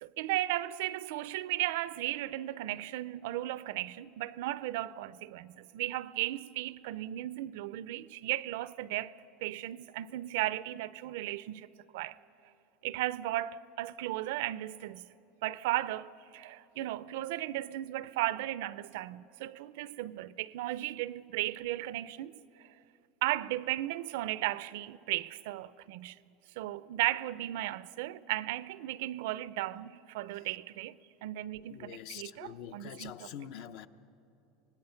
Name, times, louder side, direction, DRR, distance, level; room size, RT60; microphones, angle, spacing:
voice 1, 0.0-9.1 9.4-11.7 11.9-12.2 12.8-15.1 15.4-22.3 22.6-22.7 23.2-26.2 26.6-31.0 31.2-33.3, right 15 dB, 70° right, 0.4 m, -35 dB
voice 2, 31.7-33.9, left 9 dB, 55° left, 0.7 m, -45 dB
25.5 x 19.5 x 5.7 m
supercardioid pair, 160°, 0 cm